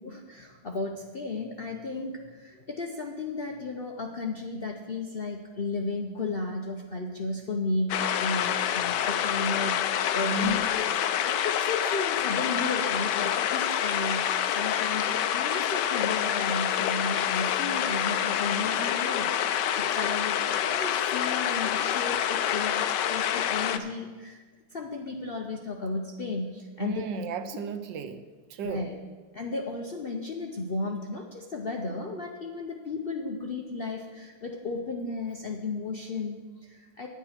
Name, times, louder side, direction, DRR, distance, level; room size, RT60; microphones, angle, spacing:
voice 1, 0.0-9.8 10.1-24.4 24.7-27.1 28.6-29.0 29.3-37.1, left 3 dB, 55° left, 2 dB, 0.6 m, -34 dB
sound 1, 7.9-23.8, left 10 dB, 75° left, 1.2 m, -27 dB
voice 2, 10.2-10.6 26.8-28.2 28.5-28.9, right 3 dB, 80° right, 9 dB, 1.4 m, -34 dB
9.9 x 9.3 x 5.8 m, 1.4 s
omnidirectional pair, 1.9 m